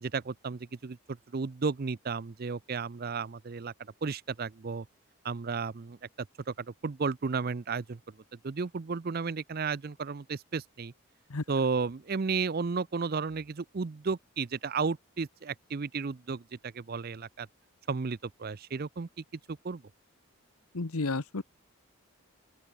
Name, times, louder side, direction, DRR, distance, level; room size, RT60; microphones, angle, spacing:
voice 1, 0.0-3.7 4.0-4.9 5.2-6.0 6.5-8.2 8.4-10.9 11.5-17.5 17.9-19.8, right 4 dB, 40° right, 0.5 m, -33 dB
voice 2, 20.7-21.4, left 3 dB, 75° left, 1.1 m, -31 dB
open air
head